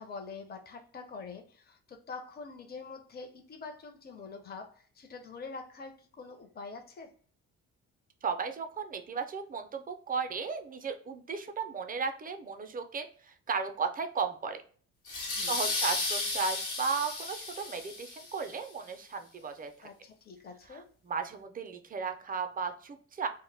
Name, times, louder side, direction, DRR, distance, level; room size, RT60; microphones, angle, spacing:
voice 1, 0.0-7.1 15.3-15.7 19.8-20.9, left 4 dB, 30° left, 0.5 m, -45 dB
voice 2, 8.2-14.6 15.4-19.9 20.7-23.3, right 5 dB, 30° right, 0.4 m, -35 dB
sound 1, 15.1-18.5, left 3 dB, 85° left, 0.9 m, -34 dB
2.1 x 2.1 x 3.2 m
cardioid pair, 90°, 30 cm